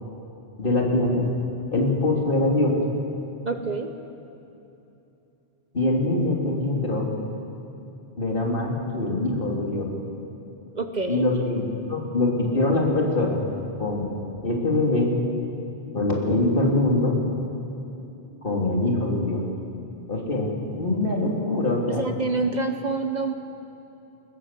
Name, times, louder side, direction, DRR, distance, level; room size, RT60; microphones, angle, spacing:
voice 1, 0.6-1.3 1.7-2.8 5.7-7.1 8.2-9.9 11.1-13.4 13.8-14.1 14.4-15.2 15.9-17.2 18.4-19.4 20.1-22.0, left 2 dB, 50° left, -1 dB, 3.4 m, -23 dB
voice 2, 3.4-3.9 10.7-11.3 21.9-23.3, right 3 dB, 40° right, 6 dB, 1.0 m, -27 dB
22.0 x 20.0 x 7.5 m, 2.9 s
omnidirectional pair, 1.1 m